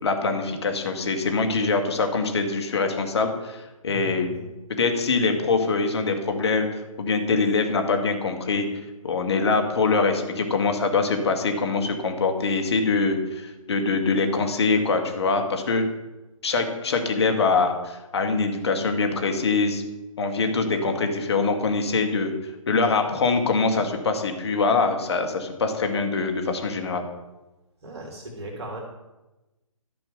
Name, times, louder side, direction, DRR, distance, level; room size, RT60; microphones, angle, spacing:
voice 1, 0.0-4.3 4.7-6.7 7.0-8.7 9.0-15.9 16.4-19.8 20.2-22.3 22.7-27.0, left 4 dB, 50° left, 5 dB, 1.9 m, -23 dB
voice 2, 3.9-4.5 27.8-28.8, equal, 50° right, 0 dB, 2.8 m, -37 dB
12.5 x 5.8 x 6.9 m, 1.1 s
figure-of-eight pair, 140°, 18 cm